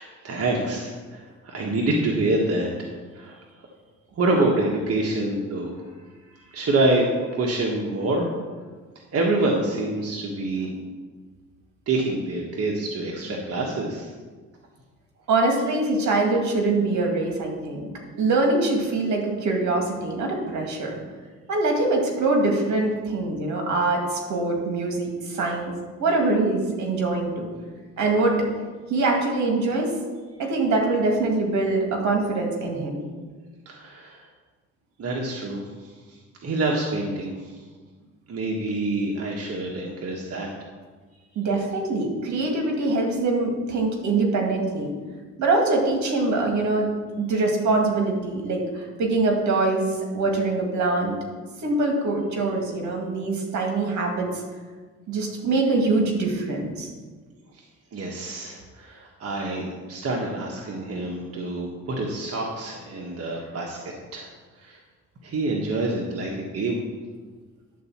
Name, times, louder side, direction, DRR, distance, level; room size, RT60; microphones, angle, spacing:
voice 1, 0.0-3.4 4.2-5.8 6.3-8.3 9.1-10.7 11.9-14.1 33.6-34.3 35.0-37.6 38.3-40.5 57.5-57.6 57.9-63.8 64.1-64.3 64.6-64.8 65.2-66.8, right 2 dB, 50° right, -1 dB, 1.4 m, -26 dB
voice 2, 15.3-17.9 18.2-21.0 21.5-25.7 26.0-27.5 28.0-28.4 28.9-29.9 30.4-33.0 41.4-44.9 45.4-46.9 47.2-51.2 51.6-54.4 55.1-56.9, right 2 dB, 70° right, 1 dB, 2.2 m, -23 dB
11.0 x 4.1 x 7.3 m, 1.4 s
cardioid pair, 90°, 30 cm